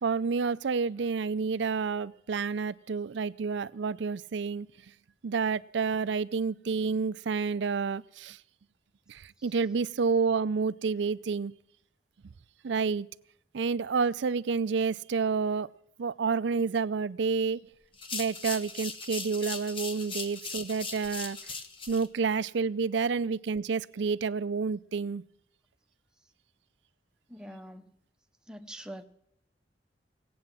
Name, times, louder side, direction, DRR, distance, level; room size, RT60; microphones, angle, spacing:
voice 1, 0.0-4.7 5.2-8.4 9.1-11.5 12.6-13.1 13.5-15.7 16.0-17.6 18.1-21.4 21.9-25.2, right 5 dB, 75° right, 0.5 m, -29 dB
sound 1, 17.9-22.1, left 4 dB, 30° left, 1.1 m, -38 dB
voice 2, 27.3-27.9 28.5-29.0, equal, 5° right, 0.8 m, -44 dB
18.0 x 8.6 x 7.3 m
head